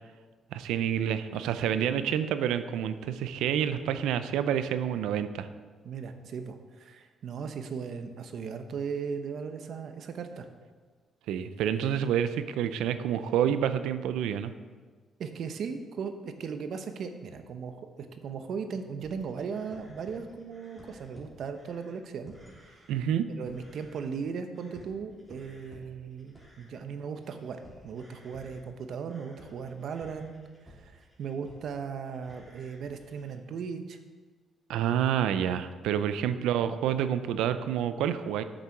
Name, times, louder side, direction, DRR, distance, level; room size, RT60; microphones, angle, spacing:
voice 1, 0.5-5.5 11.3-14.5 22.9-23.3 34.7-38.4, right 9 dB, 90° right, 11 dB, 0.5 m, -28 dB
voice 2, 5.8-10.5 15.2-22.3 22.6-22.8 23.4-30.3 30.6-34.0, right 6 dB, 65° right, 8 dB, 0.8 m, -37 dB
sound 1, 19.0-23.0 23.3-24.3 24.5-31.8 32.0-33.4, equal, 5° right, 3.1 m, -55 dB
7.6 x 6.7 x 5.9 m, 1.5 s
cardioid pair, 90°, 0 cm